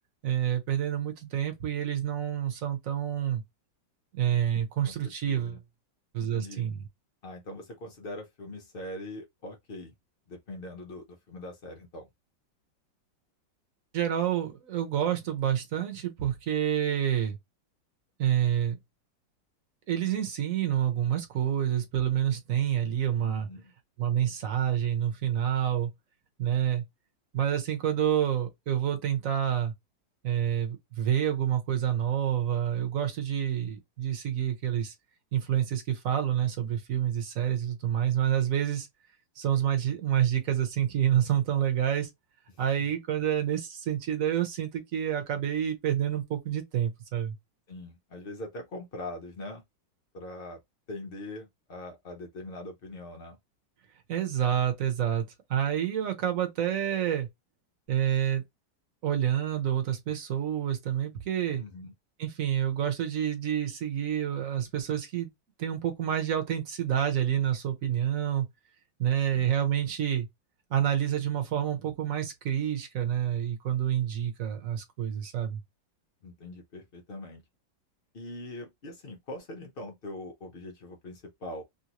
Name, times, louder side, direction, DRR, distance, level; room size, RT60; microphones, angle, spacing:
voice 1, 0.2-3.4 4.1-5.6 6.1-6.8 13.9-17.4 18.2-18.8 19.9-23.5 24.0-25.9 26.4-26.8 27.3-29.7 30.2-34.9 35.3-38.9 39.4-42.1 42.6-47.4 54.1-57.3 57.9-58.4 59.0-61.6 62.2-65.3 65.6-68.5 69.0-70.3 70.7-75.6, right 10 dB, 55° right, 1.1 m, -28 dB
voice 2, 4.8-5.6 6.2-6.6 7.2-9.9 10.3-12.1 23.2-23.7 42.8-42.9 43.2-43.3 47.7-49.6 50.1-50.6 50.9-53.4 61.5-61.9 69.3-69.6 76.2-77.4 78.1-81.6, left 1 dB, 85° left, 0.5 m, -42 dB
3.2 x 2.6 x 2.9 m
omnidirectional pair, 2.1 m